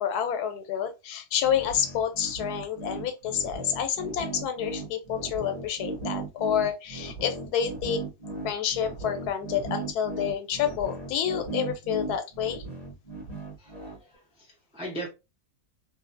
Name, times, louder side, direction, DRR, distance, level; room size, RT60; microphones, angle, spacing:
voice 1, 0.0-8.0 8.4-12.6, left 9 dB, 90° left, 1.1 m, -29 dB
sound 1, 1.4-14.0, right 3 dB, 30° left, 0.9 m, -37 dB
voice 2, 13.6-15.1, right 1 dB, 10° right, 0.3 m, -39 dB
2.6 x 2.6 x 2.4 m
omnidirectional pair, 1.6 m